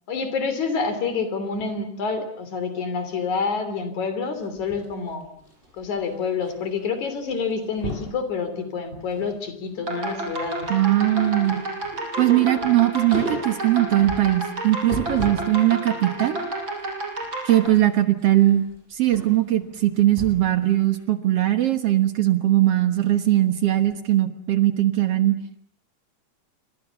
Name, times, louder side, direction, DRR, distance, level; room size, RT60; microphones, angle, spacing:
voice 1, 0.1-5.2 5.7-10.7, left 5 dB, 70° left, 10 dB, 4.5 m, -28 dB
sound 1, 4.4-6.5 6.8-7.1 7.3-8.2 8.7-9.4 9.7-15.5 15.9-20.6 20.9-21.0, left 1 dB, 15° left, 8.1 m, -37 dB
sound 2, 9.8-17.7, right 2 dB, 40° right, 6.3 m, -30 dB
voice 2, 10.7-11.6 12.2-16.4 17.4-18.7 18.9-25.4, right 14 dB, 60° right, 9 dB, 2.1 m, -20 dB
29.0 x 24.0 x 7.1 m, 0.64 s
omnidirectional pair, 3.5 m